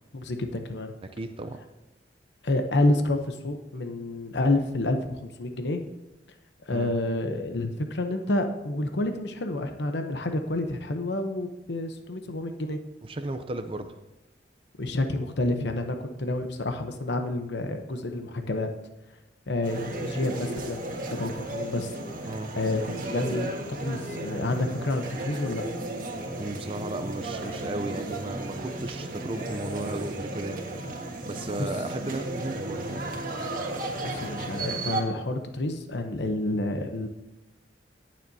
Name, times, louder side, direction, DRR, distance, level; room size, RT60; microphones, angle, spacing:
voice 1, 0.1-0.9 2.4-5.8 6.7-12.8 14.8-18.7 19.5-21.9 22.2-23.5 23.8-25.6 31.6-31.7 34.0-37.1, left 2 dB, 70° left, 6 dB, 0.9 m, -29 dB
voice 2, 1.0-1.6 6.7-6.9 13.0-13.9 22.3-22.5 26.4-30.7 31.3-33.0, right 2 dB, 30° right, 7 dB, 0.5 m, -35 dB
sound 1, 19.6-35.0, right 2 dB, 50° right, 1.6 m, -34 dB
19.0 x 7.4 x 2.8 m, 0.98 s
head